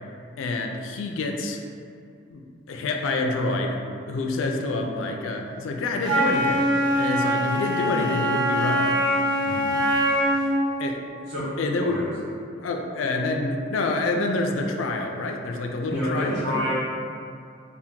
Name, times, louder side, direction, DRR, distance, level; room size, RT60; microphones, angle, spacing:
voice 1, 0.4-1.6 2.3-2.4 2.7-3.8 4.1-6.7 6.9-9.0 10.8-11.0 11.6-12.1 12.6-16.6, left 2 dB, 90° left, 2 dB, 0.3 m, -27 dB
Wind instrument woodwind instrument, 6.0-10.6, equal, 25° right, 0.5 m, -23 dB
voice 2, 9.4-9.8 11.3-11.5 11.8-12.1 15.9-16.7, equal, 75° right, -8 dB, 1.0 m, -29 dB
2.7 x 2.1 x 3.5 m, 2.4 s
head